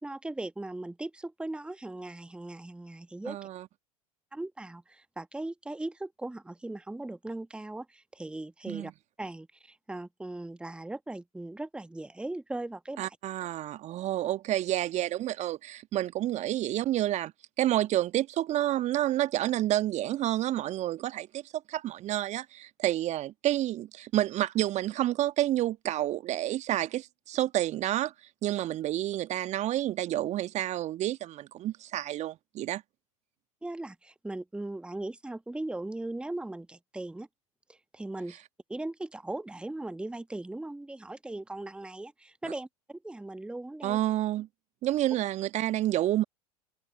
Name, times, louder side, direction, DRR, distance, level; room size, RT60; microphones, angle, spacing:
voice 1, 0.0-3.4 4.3-8.9 9.2-13.2 33.6-37.3 37.7-38.4 38.7-44.0, right 2 dB, 5° right, 1.4 m, -38 dB
voice 2, 3.3-3.7 8.7-8.9 13.0-17.3 17.6-21.4 21.7-28.1 28.4-32.8 43.8-44.5 44.8-46.2, right 13 dB, 35° right, 1.3 m, -29 dB
figure-of-eight pair, 80°, 19 cm